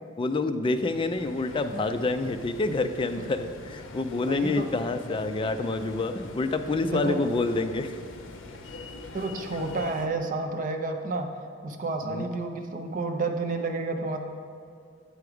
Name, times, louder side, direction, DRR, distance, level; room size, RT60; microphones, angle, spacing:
voice 1, 0.2-8.0 12.1-12.3, left 3 dB, 25° left, 8 dB, 0.3 m, -27 dB
sound 1, 0.7-10.1, left 3 dB, 70° left, 0.6 m, -44 dB
voice 2, 4.3-4.7 6.8-7.2 9.1-11.3 11.6-14.2, right 3 dB, 45° right, 5 dB, 0.5 m, -30 dB
7.8 x 4.7 x 4.9 m, 2.4 s
head